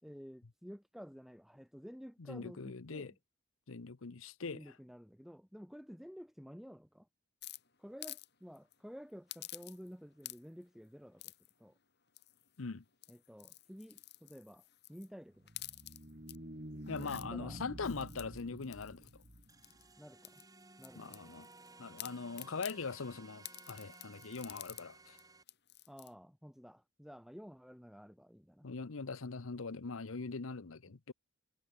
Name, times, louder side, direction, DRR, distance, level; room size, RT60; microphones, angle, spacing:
voice 1, 0.0-3.2 4.4-7.1 7.8-11.3 11.6-11.8 13.1-14.6 14.9-15.7 17.0-17.6 20.0-20.4 20.8-21.2 25.9-28.7 30.8-30.9, equal, ahead, 3.7 m, -52 dB
voice 2, 2.3-3.1 3.7-4.6 12.6-12.8 16.9-19.1 21.0-21.5 21.8-25.2 28.6-31.1, left 4 dB, 80° left, 0.9 m, -42 dB
sound 1, 7.4-8.3 8.6-8.7 9.3-9.9 10.2-10.6 11.2-11.5 12.2-12.6 12.9-15.1 15.5-16.4 16.8-17.3 17.8-19.8 20.2-21.7 22.0-22.8 23.4-24.9 25.2-25.3 25.5-26.1, left 14 dB, 55° left, 6.1 m, -50 dB
sound 2, 15.4-19.9, right 1 dB, 40° right, 2.9 m, -49 dB
sound 3, 19.5-25.4, right 3 dB, 20° right, 3.3 m, -58 dB
head